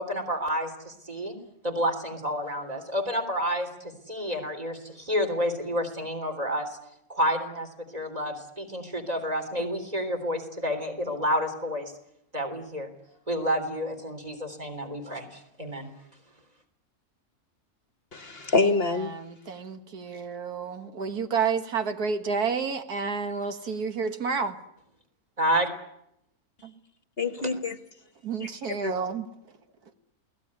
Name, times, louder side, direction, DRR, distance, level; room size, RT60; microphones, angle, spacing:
voice 1, 0.0-1.4 1.6-6.8 7.1-11.9 12.3-12.9 13.3-15.9 25.4-25.7 27.4-27.5, equal, 25° right, 4 dB, 3.6 m, -29 dB
voice 2, 18.1-19.2 27.2-27.8 28.4-28.5 28.8-28.9, left 3 dB, 45° left, 10 dB, 1.3 m, -26 dB
voice 3, 19.1-24.6 28.2-29.3, right 5 dB, 90° right, 8 dB, 2.1 m, -30 dB
28.5 x 18.5 x 9.7 m, 0.81 s
omnidirectional pair, 1.6 m